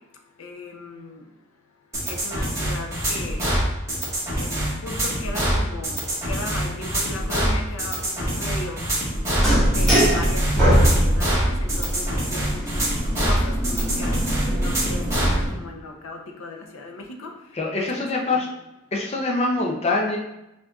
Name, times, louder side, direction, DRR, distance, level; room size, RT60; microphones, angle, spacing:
voice 1, 0.4-1.2 2.0-3.4 4.3-8.8 9.7-12.9 13.2-14.2 14.5-15.0 15.3-17.3 17.8-17.9 18.3-18.5, left 2 dB, 75° left, 2 dB, 0.6 m, -36 dB
sound 1, 1.9-15.4, right 1 dB, 15° right, 1.3 m, -25 dB
sound 2, 9.3-15.5, equal, ahead, 1.4 m, -22 dB
voice 2, 17.6-18.5 18.9-20.2, left 2 dB, 30° left, -1 dB, 0.5 m, -24 dB
6.0 x 2.6 x 2.3 m, 0.91 s
head